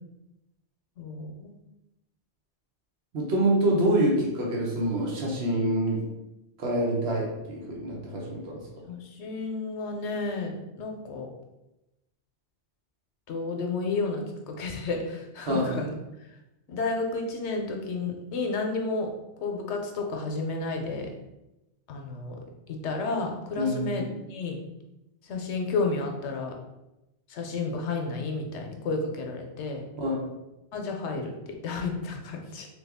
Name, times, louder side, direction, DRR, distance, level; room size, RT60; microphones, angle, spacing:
voice 1, 1.0-1.5 8.9-11.3 13.3-15.9 16.7-19.1 19.4-21.1 21.9-22.4 22.7-24.6 25.3-26.5 27.3-29.8 30.7-31.3 31.6-32.7, left 3 dB, 80° left, 2 dB, 0.9 m, -31 dB
voice 2, 3.1-6.0 6.6-8.6 15.5-15.8 23.6-24.0 30.0-30.2, right 1 dB, 70° right, -3 dB, 1.1 m, -26 dB
3.0 x 2.3 x 3.4 m, 0.94 s
omnidirectional pair, 1.1 m